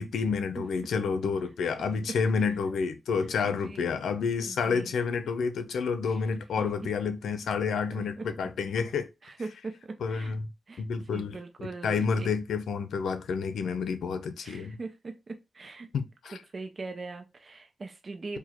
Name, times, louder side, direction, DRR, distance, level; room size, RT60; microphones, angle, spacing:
voice 1, 0.0-9.1 10.0-10.5 10.8-11.4 11.8-14.8 15.9-16.4, left 5 dB, 90° left, 0.6 m, -29 dB
voice 2, 3.4-3.9 4.4-4.9 7.9-8.3 9.2-10.3 10.7-10.8 11.1-12.3 14.4-15.9 16.5-18.4, right 3 dB, 40° right, 0.6 m, -41 dB
4.8 x 2.3 x 4.3 m
cardioid pair, 100°, 0 cm